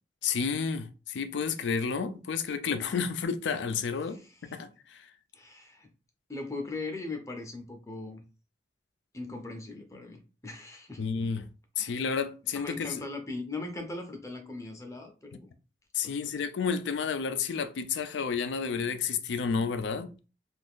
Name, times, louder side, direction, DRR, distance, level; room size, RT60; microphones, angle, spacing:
voice 1, 0.2-5.1 11.0-11.5 11.8-12.9 15.9-20.1, left 6 dB, 90° left, 0.4 m, -31 dB
voice 2, 4.0-4.6 5.3-5.9 6.3-8.2 9.1-11.0 11.8-12.0 12.5-15.5 16.0-16.3, left 3 dB, 15° left, 0.5 m, -40 dB
2.5 x 2.4 x 3.5 m
head